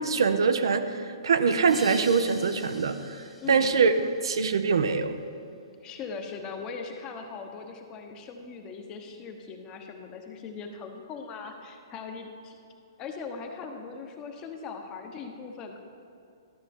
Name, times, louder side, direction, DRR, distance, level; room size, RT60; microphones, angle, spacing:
voice 1, 0.0-3.9 4.2-5.2, right 5 dB, 75° right, 9 dB, 0.5 m, -24 dB
sound 1, 1.7-4.8, equal, 5° right, 0.8 m, -46 dB
voice 2, 3.4-3.8 5.8-12.6 13.0-15.8, left 5 dB, 25° left, 4 dB, 0.9 m, -40 dB
12.0 x 6.5 x 3.6 m, 2.5 s
hypercardioid pair, 135°, 3 cm